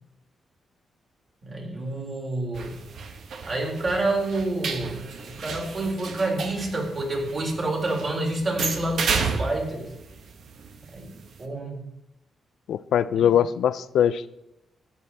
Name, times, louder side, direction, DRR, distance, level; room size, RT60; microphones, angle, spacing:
voice 1, 1.4-2.7 3.4-5.1 5.4-9.9 10.9-11.1 11.4-11.8 13.1-13.2, right 2 dB, 40° right, 0 dB, 3.9 m, -28 dB
sound 1, 2.5-11.4, right 5 dB, 70° right, 1.4 m, -33 dB
voice 2, 12.7-14.3, left 9 dB, 80° left, 15 dB, 0.4 m, -22 dB
14.5 x 9.7 x 4.2 m, 0.83 s
cardioid pair, 105°, 0 cm